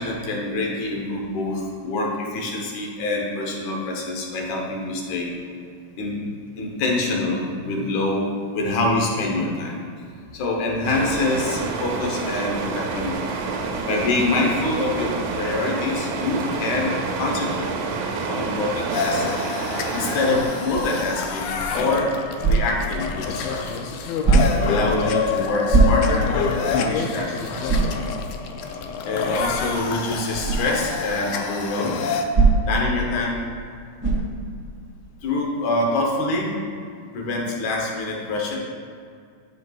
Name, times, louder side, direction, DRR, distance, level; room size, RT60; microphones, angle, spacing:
voice 1, 0.0-5.3 6.0-6.3 6.6-9.8 10.3-13.3 13.8-17.7 18.3-19.3 19.9-24.0 24.7-27.9 29.0-32.0 32.7-33.4 35.2-36.5 37.1-38.6, left 2 dB, 70° left, -1 dB, 2.3 m, -25 dB
sound 1, 10.8-21.0, right 4 dB, 80° right, 2.0 m, -28 dB
sound 2, 18.9-32.2, left 5 dB, 90° left, 1.5 m, -27 dB
sound 3, 22.4-22.9 24.2-24.7 25.7-26.3 26.8-26.9 27.7-28.0 30.4-30.7 32.3-32.8 34.0-34.4, right 3 dB, 25° right, 1.3 m, -18 dB
12.5 x 5.3 x 2.3 m, 2.3 s
omnidirectional pair, 3.7 m